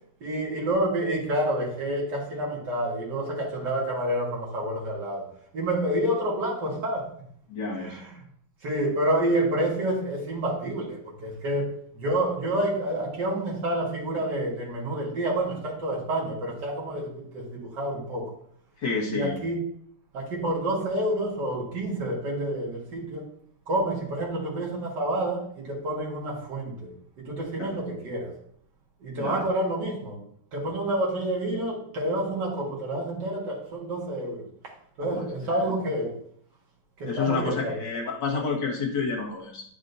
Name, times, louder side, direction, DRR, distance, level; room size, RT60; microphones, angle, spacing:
voice 1, 0.2-5.3 5.5-7.1 7.7-8.1 8.6-18.3 19.1-19.6 20.1-23.2 23.7-26.9 27.2-28.4 29.0-30.2 30.5-34.5 35.0-36.2 37.0-37.8, right 1 dB, 80° right, -3 dB, 2.4 m, -28 dB
voice 2, 7.5-8.0 18.8-19.4 27.6-27.8 29.2-29.4 35.1-35.2 37.0-39.6, left 4 dB, 90° left, -2 dB, 2.1 m, -29 dB
9.9 x 6.2 x 2.6 m, 0.62 s
omnidirectional pair, 1.8 m